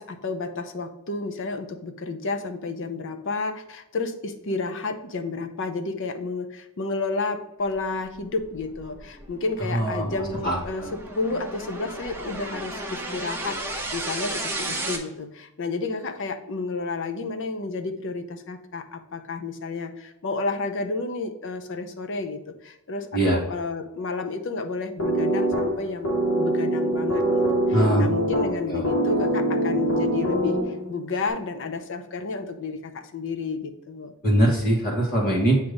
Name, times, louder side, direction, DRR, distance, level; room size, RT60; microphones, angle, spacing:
voice 1, 0.0-27.4 27.7-34.1, left 3 dB, 60° left, 7 dB, 0.6 m, -31 dB
sound 1, 8.0-15.0, right 2 dB, 10° right, 0.9 m, -34 dB
voice 2, 9.6-10.9 23.1-23.4 27.7-28.2 28.7-28.8 34.2-35.6, right 1 dB, 40° left, -3 dB, 1.4 m, -22 dB
sound 2, 25.0-31.0, right 1 dB, 90° left, 1.5 m, -24 dB
7.9 x 2.8 x 5.0 m, 0.89 s
head